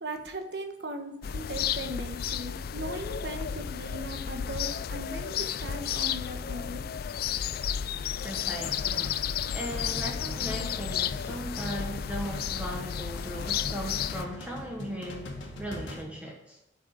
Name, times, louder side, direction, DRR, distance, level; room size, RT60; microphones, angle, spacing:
voice 1, 0.0-6.8, right 1 dB, 60° right, 6 dB, 1.3 m, -38 dB
sound 1, 1.2-14.2, left 8 dB, 50° left, 0.3 m, -32 dB
voice 2, 8.2-9.2 9.5-15.3 15.6-16.6, equal, 5° right, -1 dB, 1.3 m, -37 dB
sound 2, 8.6-16.0, left 1 dB, 80° left, 2.0 m, -42 dB
8.4 x 6.1 x 8.2 m, 0.84 s
head